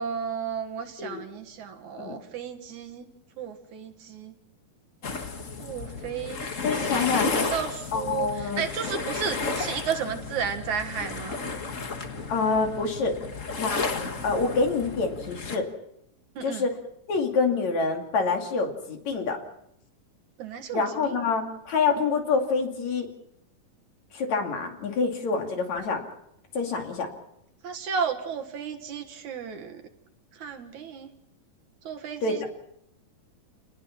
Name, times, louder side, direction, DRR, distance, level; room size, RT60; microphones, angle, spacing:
voice 1, 0.0-3.1 3.4-4.3 5.6-6.4 6.8-11.4 16.4-16.6 20.4-21.1 27.6-29.8 30.4-31.1 31.8-32.4, right 7 dB, 65° right, 6 dB, 2.8 m, -33 dB
sound 1, 5.0-15.6, left 4 dB, 40° left, 1.2 m, -32 dB
voice 2, 6.6-7.6 7.9-8.6 12.3-13.1 13.6-13.8 14.2-15.7 16.4-16.7 17.1-19.4 20.7-23.1 24.1-26.0 26.6-27.1 32.2-32.5, left 4 dB, 55° left, 3 dB, 3.7 m, -26 dB
29.5 x 20.0 x 6.0 m, 0.77 s
omnidirectional pair, 3.9 m